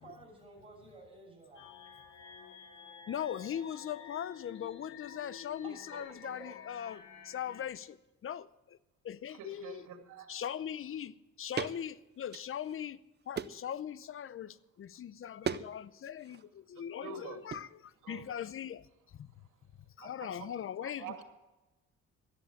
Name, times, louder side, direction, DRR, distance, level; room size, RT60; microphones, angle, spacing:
voice 1, 0.0-1.7 5.6-6.5, right 3 dB, 20° right, 6.7 m, -52 dB
sound 1, 1.5-7.7, left 7 dB, 70° left, 2.2 m, -51 dB
voice 2, 3.1-8.0 8.2-8.8 9.0-9.8 10.3-13.0 13.3-18.9 19.1-19.3 20.0-21.2, left 9 dB, 45° left, 0.7 m, -40 dB
voice 3, 9.3-10.3 17.0-17.4 18.0-18.2 20.0-20.5 20.8-21.2, right 6 dB, 85° right, 2.7 m, -46 dB
sound 2, 11.5-11.8 12.2-12.9 13.3-13.7 15.4-15.7 15.9-16.4 17.5-17.7, right 7 dB, 35° right, 0.6 m, -37 dB
13.0 x 10.0 x 7.3 m
cardioid pair, 90°, 30 cm